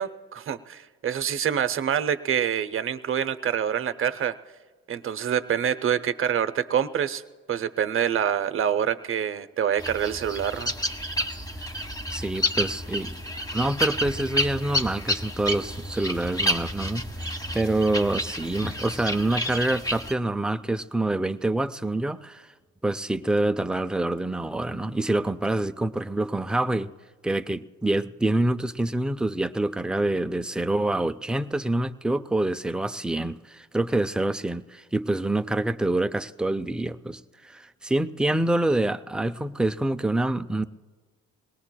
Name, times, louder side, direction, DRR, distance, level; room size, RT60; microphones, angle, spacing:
voice 1, 0.0-4.3 4.9-7.2 7.5-10.7, right 9 dB, 45° right, 12 dB, 0.6 m, -26 dB
sound 1, 9.8-20.1, equal, 10° left, 1.0 m, -30 dB
voice 2, 12.1-13.1 13.5-22.5 22.8-26.9 27.2-40.6, right 2 dB, 5° right, 10 dB, 0.3 m, -26 dB
21.5 x 18.5 x 2.2 m, 1.4 s
cardioid pair, 90°, 30 cm